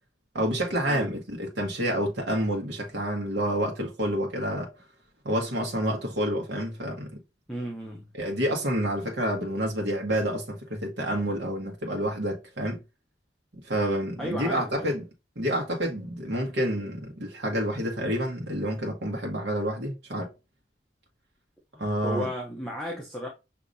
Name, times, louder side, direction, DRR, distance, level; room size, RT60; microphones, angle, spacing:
voice 1, 0.3-4.7 5.2-7.2 8.1-12.8 13.6-15.0 15.4-20.3 21.8-22.3, equal, 85° right, 1.2 m, -28 dB
voice 2, 7.5-8.1 14.2-14.9 21.7-23.3, equal, 5° left, 0.7 m, -34 dB
6.3 x 2.8 x 2.6 m
head